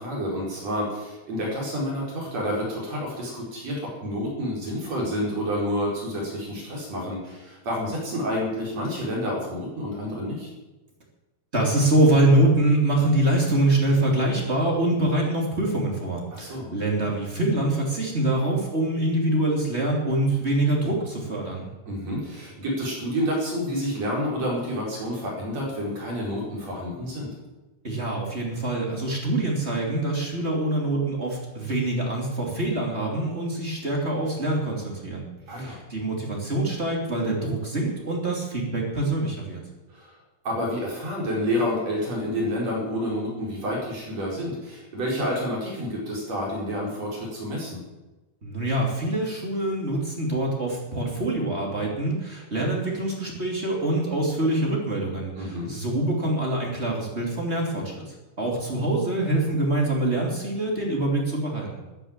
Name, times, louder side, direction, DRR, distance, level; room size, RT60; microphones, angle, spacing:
voice 1, 0.0-10.5 16.3-16.7 21.9-27.3 35.5-35.8 39.9-40.1 40.4-47.8 55.4-55.7, equal, 35° right, -3 dB, 5.6 m, -29 dB
voice 2, 11.5-21.7 27.8-35.3 35.6-39.7 48.4-61.8, right 1 dB, 20° right, -1 dB, 2.0 m, -25 dB
15.5 x 10.0 x 7.5 m, 1.1 s
omnidirectional pair, 5.5 m